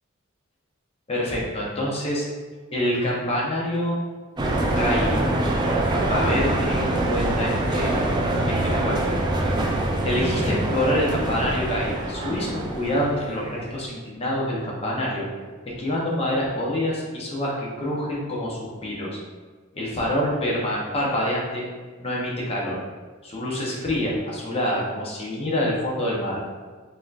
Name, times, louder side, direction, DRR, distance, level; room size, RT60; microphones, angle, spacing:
voice 1, 1.1-2.3 2.7-4.0 4.7-5.3 6.1-7.9 8.5-9.1 10.0-15.3 15.6-19.2 19.7-21.6 22.0-22.8 23.2-26.4, left 1 dB, 30° left, -4 dB, 0.7 m, -26 dB
sound 1, 4.4-13.5, right 1 dB, 20° right, 0.3 m, -24 dB
4.1 x 2.6 x 2.4 m, 1.4 s
head